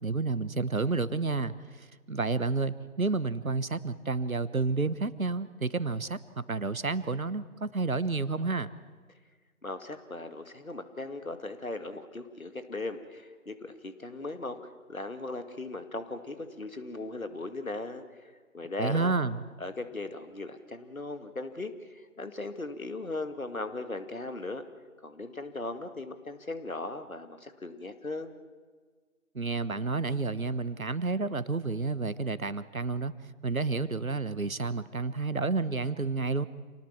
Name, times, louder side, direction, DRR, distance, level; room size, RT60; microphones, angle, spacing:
voice 1, 0.0-8.7 18.8-19.4 29.3-33.1 33.4-36.5, right 3 dB, 65° right, 15 dB, 1.2 m, -30 dB
voice 2, 9.6-14.6 14.9-19.1 19.6-24.6 25.0-28.4, left 2 dB, 65° left, 8 dB, 2.2 m, -38 dB
28.0 x 19.0 x 7.4 m, 1.5 s
figure-of-eight pair, 165°, 44 cm